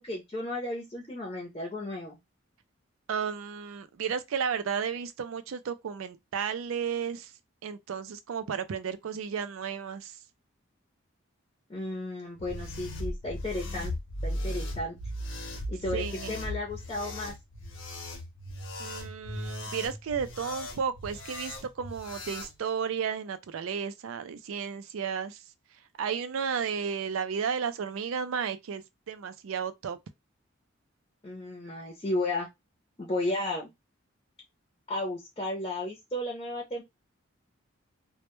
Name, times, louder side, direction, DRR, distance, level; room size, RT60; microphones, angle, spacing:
voice 1, 0.0-2.2 11.7-13.9 14.2-15.0 15.7-17.3 31.2-32.5 33.0-33.7 34.9-36.8, left 1 dB, 25° left, 0.5 m, -34 dB
voice 2, 3.1-7.3 7.6-10.2 15.9-16.3 18.8-25.4 26.0-30.0, right 7 dB, 85° right, 0.4 m, -33 dB
sound 1, 12.4-22.5, left 1 dB, 75° left, 0.7 m, -37 dB
2.1 x 2.1 x 2.9 m
head